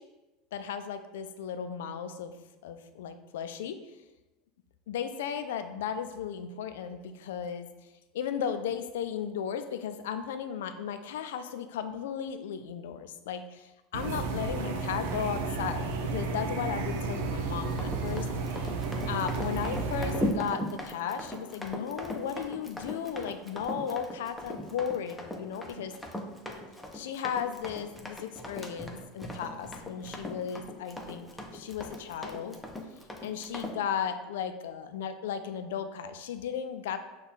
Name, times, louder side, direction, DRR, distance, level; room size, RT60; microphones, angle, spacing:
voice 1, 0.5-2.3 2.6-3.8 4.9-7.7 8.1-18.3 18.7-18.8 19.1-25.9 26.9-32.6 33.2-37.0, left 8 dB, 80° left, 9 dB, 0.3 m, -35 dB
sound 1, 13.9-20.3, right 4 dB, 75° right, 0.5 m, -32 dB
Run, 17.7-33.8, left 1 dB, 5° left, 0.7 m, -39 dB
5.3 x 2.3 x 4.0 m, 1.1 s
hypercardioid pair, 90°, 0 cm